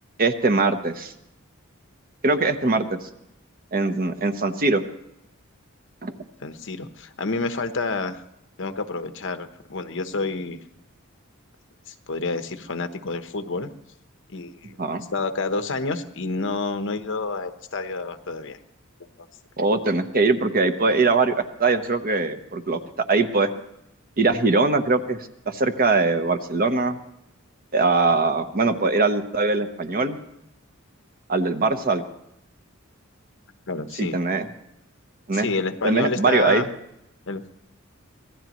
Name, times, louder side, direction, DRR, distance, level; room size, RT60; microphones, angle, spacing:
voice 1, 0.2-1.1 2.2-3.0 3.7-4.8 6.0-6.1 14.8-15.0 19.6-22.8 23.1-23.5 24.2-25.2 25.5-27.0 27.7-30.2 31.3-32.0 34.0-34.5 35.3-35.5 35.8-36.6, right 3 dB, 45° right, 7 dB, 1.0 m, -21 dB
voice 2, 6.4-8.2 8.6-10.6 11.9-13.7 14.3-18.6 33.7-34.2 35.3-36.7 37.3-37.5, left 3 dB, 60° left, 8 dB, 1.0 m, -29 dB
25.5 x 18.0 x 3.1 m, 0.81 s
head